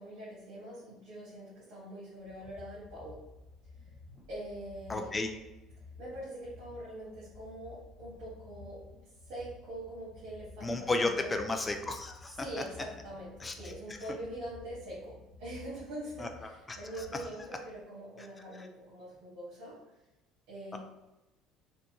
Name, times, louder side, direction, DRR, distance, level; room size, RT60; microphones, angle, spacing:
voice 1, 0.0-3.2 4.3-5.1 6.0-8.8 9.2-11.4 12.4-19.8 20.5-20.8, right 1 dB, 75° right, -8 dB, 1.4 m, -43 dB
sound 1, 2.2-17.8, left 3 dB, 5° right, 1.4 m, -53 dB
voice 2, 4.9-5.3 10.6-12.5 13.4-13.5 16.2-17.1 18.2-18.3 18.5-18.7 20.7-20.8, left 2 dB, 20° left, 5 dB, 0.4 m, -33 dB
3.5 x 2.5 x 2.9 m, 0.99 s
cardioid pair, 120°, 0 cm